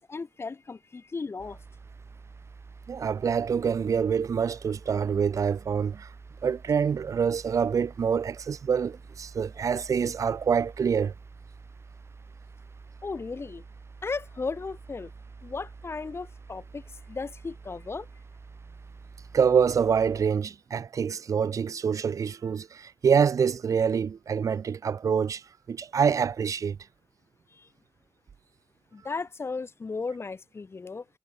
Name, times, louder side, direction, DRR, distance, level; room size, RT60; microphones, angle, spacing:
voice 1, 0.0-1.6 13.0-13.6 14.0-15.1 15.4-18.1 27.5-27.7 28.9-31.1, left 4 dB, 50° left, 2.4 m, -35 dB
sound 1, 1.4-20.3, right 4 dB, 50° right, 1.5 m, -48 dB
voice 2, 2.9-6.1 6.4-11.1 19.3-25.4 25.7-26.8, right 6 dB, 85° right, 0.7 m, -26 dB
wide cardioid pair, 95°, 6 cm